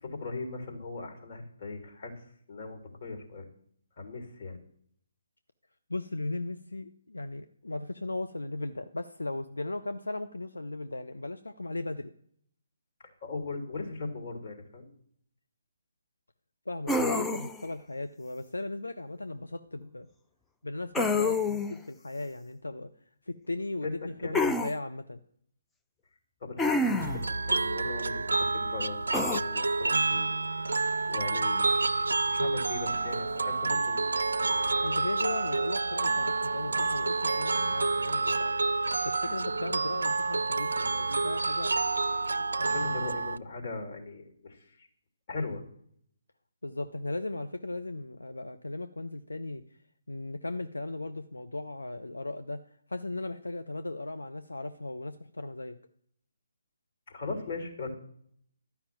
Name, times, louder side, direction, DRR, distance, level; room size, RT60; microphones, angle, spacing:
voice 1, 0.0-2.1 2.5-3.4 4.0-4.6 13.2-14.9 23.8-23.9 24.2-24.5 26.4-29.0 29.2-31.7 32.3-34.1 41.7-41.8 42.6-44.9 45.3-45.6 57.1-57.9, left 3 dB, 45° left, 1 dB, 3.0 m, -39 dB
voice 2, 5.9-12.1 16.7-20.1 20.6-22.9 23.3-25.2 34.8-38.5 39.0-41.7 42.6-42.9 46.6-49.6 50.1-52.6 52.9-55.8, left 2 dB, 80° left, 8 dB, 0.7 m, -37 dB
sound 1, 16.9-17.7 20.9-21.7 24.3-24.7 26.6-27.3 29.1-29.4, left 2 dB, 5° left, 0.4 m, -27 dB
sound 2, 27.0-43.4, right 3 dB, 70° right, 0.4 m, -29 dB
sound 3, 32.5-37.5, left 1 dB, 20° left, 1.7 m, -51 dB
12.0 x 5.7 x 9.1 m, 0.66 s
figure-of-eight pair, 140°, 0 cm